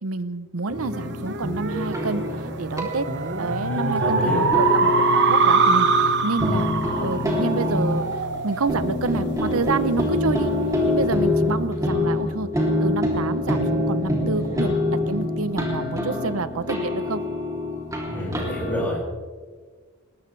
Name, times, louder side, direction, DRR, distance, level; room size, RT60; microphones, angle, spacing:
voice 1, 0.0-3.1 3.4-4.5 4.8-4.9 5.3-6.7 7.0-10.5 10.8-12.5 12.8-17.2, right 3 dB, 80° right, 13 dB, 0.8 m, -28 dB
sound 1, 0.7-18.8, left 2 dB, 15° right, 3.1 m, -26 dB
sound 2, 0.9-9.8, right 5 dB, 55° right, 1.2 m, -24 dB
sound 3, 3.5-14.1, left 3 dB, 25° left, 2.3 m, -40 dB
voice 2, 3.7-4.5 18.1-19.0, equal, 10° left, -5 dB, 6.4 m, -27 dB
20.5 x 19.5 x 3.4 m, 1.5 s
head